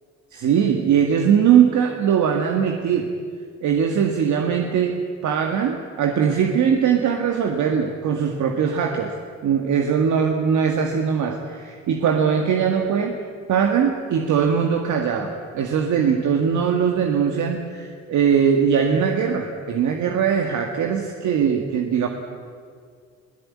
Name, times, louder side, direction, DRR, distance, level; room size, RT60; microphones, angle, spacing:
voice 1, 0.3-3.1 3.6-5.0 5.2-9.1 9.4-13.1 13.5-22.1, right 7 dB, 75° right, 3 dB, 1.9 m, -20 dB
23.0 x 17.0 x 8.7 m, 2.1 s
cardioid pair, 90°, 30 cm